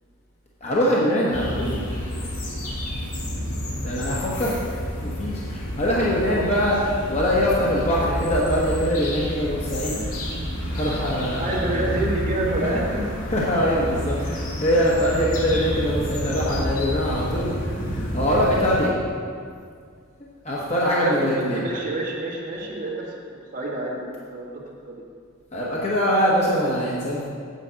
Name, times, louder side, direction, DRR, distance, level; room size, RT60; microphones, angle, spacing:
voice 1, 0.6-1.8 3.8-12.0 13.3-18.9 20.4-21.6 25.5-27.2, equal, 30° left, -6 dB, 1.2 m, -23 dB
sound 1, 1.3-18.8, equal, 80° left, 2.2 m, -29 dB
voice 2, 11.4-13.0 21.0-24.6 24.9-25.0, right 2 dB, 40° right, -4 dB, 2.0 m, -28 dB
8.3 x 5.2 x 7.5 m, 2.1 s
head